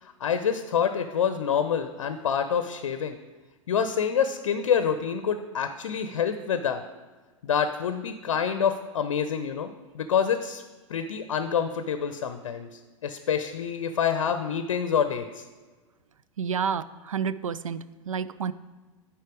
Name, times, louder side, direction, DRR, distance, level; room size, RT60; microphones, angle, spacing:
voice 1, 0.0-3.2 3.7-6.8 7.4-10.6 10.9-15.4, left 7 dB, 60° left, 9 dB, 0.6 m, -27 dB
voice 2, 16.4-17.8 18.1-18.5, right 7 dB, 70° right, 16 dB, 0.4 m, -29 dB
10.5 x 4.5 x 4.8 m, 1.3 s
figure-of-eight pair, 100°, 17 cm